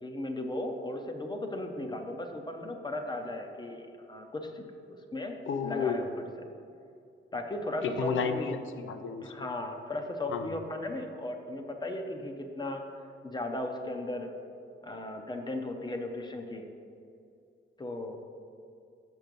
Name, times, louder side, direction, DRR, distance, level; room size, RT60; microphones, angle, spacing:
voice 1, 0.0-4.6 4.9-6.3 7.3-8.5 9.2-12.8 13.2-14.3 14.8-16.7 17.8-18.2, left 1 dB, 20° left, 4 dB, 0.6 m, -36 dB
voice 2, 5.5-6.1 7.8-9.5 10.3-10.5, left 6 dB, 70° left, 8 dB, 0.6 m, -32 dB
6.1 x 5.5 x 5.2 m, 2.5 s
wide cardioid pair, 125°, 21 cm